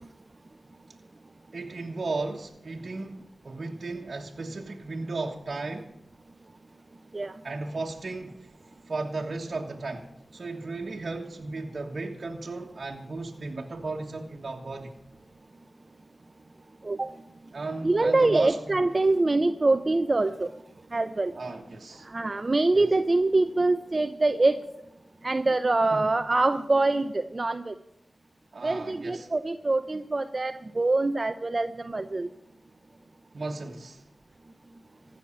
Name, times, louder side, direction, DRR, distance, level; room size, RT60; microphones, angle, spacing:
voice 1, 1.5-5.9 7.4-8.5 8.9-10.1 10.3-14.9 17.5-18.8 21.3-22.1 22.7-22.9 25.9-26.0 28.5-29.3 33.3-34.0, right 3 dB, 60° right, 0 dB, 1.5 m, -35 dB
voice 2, 17.8-20.5 20.9-21.3 22.0-24.6 25.2-27.7 28.6-32.3, right 2 dB, 45° right, 9 dB, 0.7 m, -24 dB
15.5 x 6.5 x 9.9 m, 0.83 s
cardioid pair, 40°, 0 cm